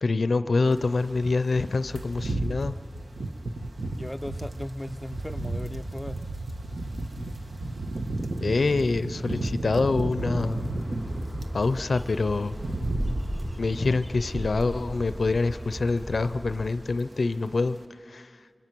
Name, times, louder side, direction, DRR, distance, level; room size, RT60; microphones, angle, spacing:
voice 1, 0.0-2.8 8.4-10.7 11.5-12.6 13.6-17.8 18.1-18.3, left 3 dB, 85° left, 13 dB, 0.5 m, -26 dB
sound 1, 0.7-11.7 12.0-15.4 15.7-15.9 16.3-17.1 17.3-17.5, right 2 dB, 75° right, 1.2 m, -34 dB
voice 2, 3.9-6.3, left 1 dB, 15° left, 9 dB, 0.5 m, -37 dB
Bird, 10.2-16.7, equal, 40° right, 3.9 m, -36 dB
25.0 x 23.0 x 6.1 m, 2.4 s
wide cardioid pair, 45°, 0 cm